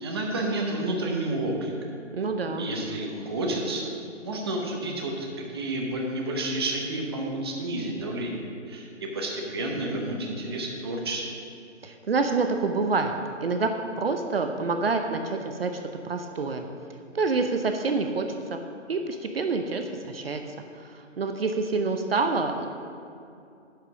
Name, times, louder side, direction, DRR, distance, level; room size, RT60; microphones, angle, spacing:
voice 1, 0.0-1.7 2.6-3.9 4.2-8.4 8.7-11.2, right 1 dB, 20° right, 0 dB, 0.8 m, -30 dB
voice 2, 2.1-2.7 11.8-13.1 13.4-13.7 14.0-15.7 16.0-16.6 17.1-18.3 18.5-18.6 18.9-20.4 21.2-22.7, right 4 dB, 50° right, 5 dB, 0.7 m, -27 dB
10.0 x 5.1 x 6.0 m, 2.5 s
hypercardioid pair, 160°, 37 cm